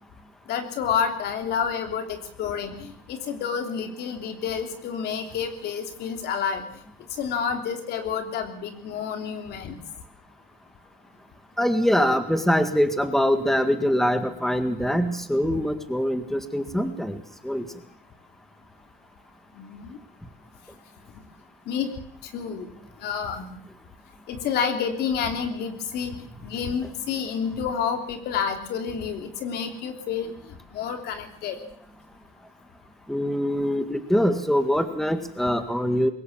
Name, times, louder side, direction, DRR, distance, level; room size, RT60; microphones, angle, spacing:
voice 1, 0.5-6.6 7.2-9.8 15.5-15.6 19.5-20.0 21.7-21.9 22.3-22.7 23.0-23.6 24.3-26.1 26.4-30.3 30.7-31.6, left 7 dB, 75° left, 5 dB, 3.3 m, -29 dB
voice 2, 11.6-17.6 33.1-36.1, equal, ahead, 8 dB, 1.8 m, -23 dB
21.5 x 18.0 x 7.3 m, 0.66 s
cardioid pair, 110°, 17 cm